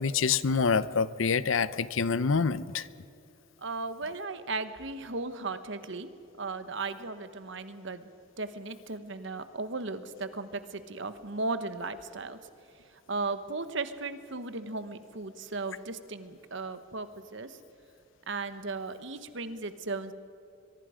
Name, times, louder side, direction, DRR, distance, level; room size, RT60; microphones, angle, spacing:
voice 1, 0.0-2.9, left 5 dB, 70° left, 16 dB, 0.7 m, -26 dB
voice 2, 3.6-6.1 6.4-8.1 8.4-12.4 13.1-17.6 18.3-20.1, right 3 dB, 60° right, 11 dB, 1.2 m, -36 dB
23.0 x 23.0 x 5.1 m, 2.7 s
head